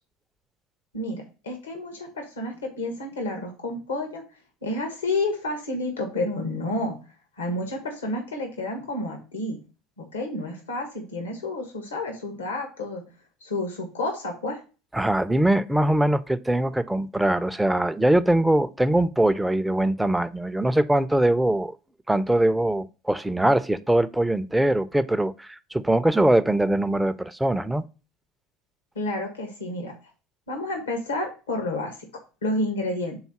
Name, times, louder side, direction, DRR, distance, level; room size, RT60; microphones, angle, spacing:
voice 1, 0.9-4.2 4.6-7.0 7.4-9.6 10.0-13.0 13.4-14.6 28.9-29.9 30.5-32.0 32.4-33.2, left 2 dB, 90° left, 1.5 m, -30 dB
voice 2, 14.9-21.8 22.1-27.8, right 1 dB, 5° right, 0.5 m, -22 dB
4.8 x 4.0 x 5.7 m
hypercardioid pair, 75°, 0 cm